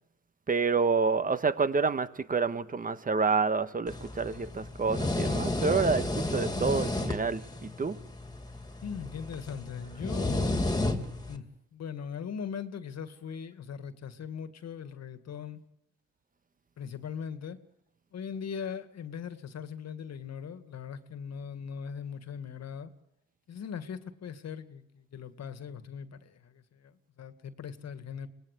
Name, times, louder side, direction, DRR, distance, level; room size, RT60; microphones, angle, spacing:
voice 1, 0.5-8.0, right 4 dB, 30° right, 1.4 m, -28 dB
sound 1, 3.9-11.4, left 2 dB, 15° left, 2.7 m, -32 dB
voice 2, 8.8-10.7 11.1-11.5 11.7-15.6 16.8-17.6 18.1-22.9 23.5-28.3, left 7 dB, 60° left, 2.0 m, -40 dB
25.0 x 19.0 x 8.3 m
cardioid pair, 90°, 30 cm